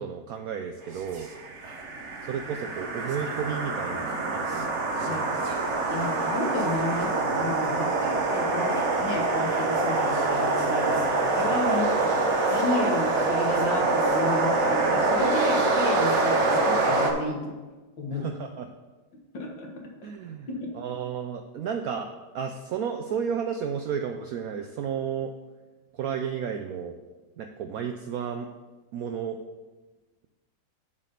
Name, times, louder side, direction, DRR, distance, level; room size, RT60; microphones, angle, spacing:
voice 1, 0.0-1.3 2.2-5.4 10.9-11.1 11.6-11.8 18.1-18.7 20.0-20.5 20.7-25.3 25.9-27.0 27.4-28.5 28.9-29.4, right 7 dB, 80° right, 5 dB, 0.8 m, -33 dB
sound 1, 1.0-17.1, right 3 dB, 50° right, 1.0 m, -25 dB
voice 2, 5.9-12.2 12.5-17.5 18.0-18.3 19.3-19.7, left 2 dB, 75° left, 0 dB, 2.0 m, -32 dB
7.3 x 4.1 x 6.7 m, 1.2 s
omnidirectional pair, 2.0 m